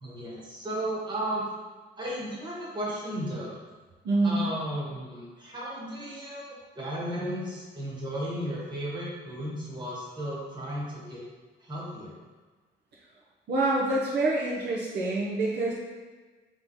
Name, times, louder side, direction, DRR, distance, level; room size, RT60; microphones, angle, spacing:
voice 1, 0.0-1.4 2.0-3.5 4.2-11.2 11.6-12.1, right 1 dB, 25° right, -6 dB, 1.5 m, -34 dB
voice 2, 4.0-4.4 13.5-15.7, right 2 dB, 60° right, -5 dB, 0.8 m, -26 dB
3.6 x 3.2 x 4.0 m, 1.3 s
cardioid pair, 120°, 20 cm